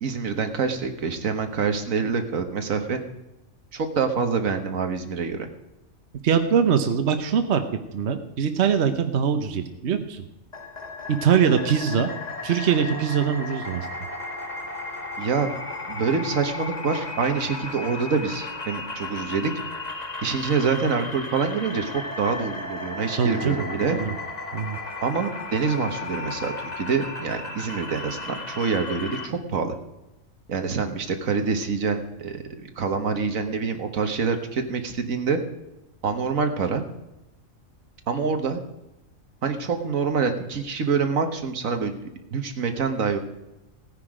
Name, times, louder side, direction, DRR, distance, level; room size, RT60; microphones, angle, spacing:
voice 1, 0.0-3.0 3.7-5.5 15.2-15.5 15.9-19.5 20.2-24.0 25.0-29.7 30.5-35.4 36.0-36.8 38.1-38.6 39.4-41.9 42.3-43.2, right 5 dB, 80° right, 7 dB, 1.7 m, -26 dB
voice 2, 6.2-7.6 7.9-10.2 11.1-12.1 12.4-13.9 23.2-23.6 23.9-24.1 24.5-24.8, right 7 dB, 55° right, 7 dB, 1.2 m, -22 dB
sound 1, 10.5-29.3, left 3 dB, 30° left, 1.4 m, -35 dB
16.5 x 9.9 x 5.0 m, 0.96 s
omnidirectional pair, 1.4 m